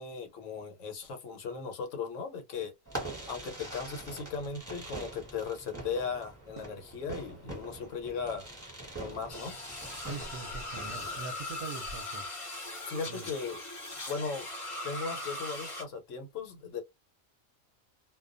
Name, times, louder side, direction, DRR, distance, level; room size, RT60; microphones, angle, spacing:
voice 1, 0.0-2.7 3.3-8.5 9.0-9.6 12.9-13.6 14.1-14.5 14.8-16.8, left 5 dB, 70° left, 1.1 m, -37 dB
Fireworks, 2.8-11.2, right 2 dB, 10° right, 1.0 m, -43 dB
sound 1, 9.3-15.8, left 2 dB, 25° left, 0.8 m, -40 dB
voice 2, 10.0-12.3 13.1-13.3, right 4 dB, 65° right, 0.8 m, -42 dB
2.2 x 2.2 x 2.4 m
omnidirectional pair, 1.4 m